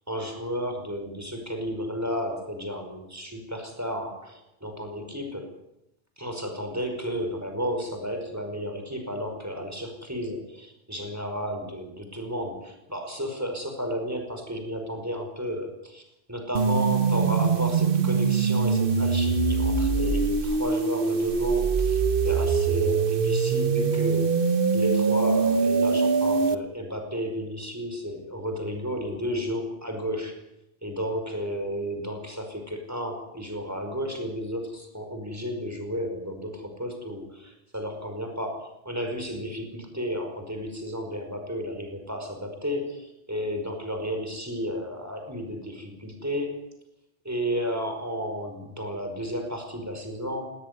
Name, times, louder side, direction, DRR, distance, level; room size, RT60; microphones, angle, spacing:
voice 1, 0.1-5.6 6.2-16.0 16.3-24.3 24.7-30.3 30.8-46.6 47.2-50.4, equal, 15° right, 4 dB, 5.2 m, -32 dB
sound 1, 16.5-26.5, right 5 dB, 60° right, 1.3 m, -23 dB
19.0 x 18.5 x 9.7 m, 0.86 s
omnidirectional pair, 1.1 m